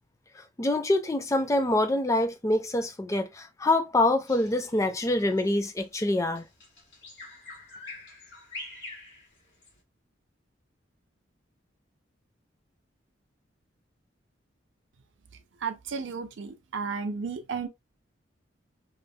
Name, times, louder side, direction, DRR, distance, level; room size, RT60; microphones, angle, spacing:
voice 1, 0.4-6.4, left 1 dB, 15° left, 0.3 m, -25 dB
Bird vocalization bird call bird song, 4.3-9.8, left 2 dB, 75° left, 1.6 m, -45 dB
voice 2, 15.6-17.7, right 5 dB, 70° right, 0.5 m, -33 dB
3.1 x 2.0 x 2.6 m
head